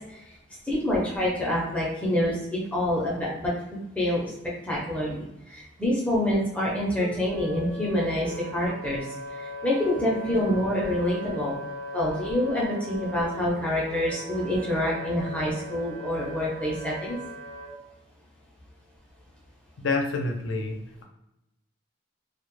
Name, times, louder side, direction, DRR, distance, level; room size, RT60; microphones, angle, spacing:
voice 1, 0.6-3.5 4.0-4.3 4.6-9.0 9.4-11.6 11.9-17.2, left 1 dB, 5° left, -5 dB, 0.5 m, -27 dB
Wind instrument woodwind instrument, 6.9-17.7, left 1 dB, 75° right, 0.5 m, -39 dB
voice 2, 19.8-21.0, left 3 dB, 85° left, 3 dB, 0.4 m, -28 dB
2.0 x 2.0 x 3.0 m, 0.90 s
head